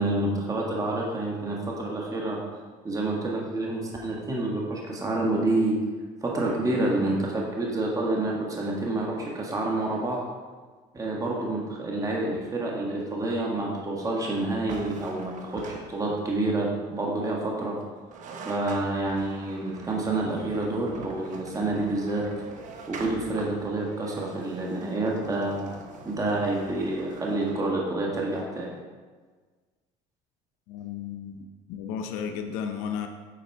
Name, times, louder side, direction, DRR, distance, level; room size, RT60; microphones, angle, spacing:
voice 1, 0.0-2.4 2.8-5.8 6.2-10.2 10.9-17.8 18.4-22.5 22.9-25.8 26.0-28.7, right 2 dB, 20° right, -2 dB, 1.4 m, -28 dB
sound 1, 14.7-16.4 17.8-17.9 18.1-27.6, right 3 dB, 55° right, 0.9 m, -44 dB
voice 2, 30.7-33.1, left 7 dB, 85° left, 5 dB, 0.7 m, -34 dB
8.5 x 4.2 x 4.6 m, 1.4 s
supercardioid pair, 95°, 16 cm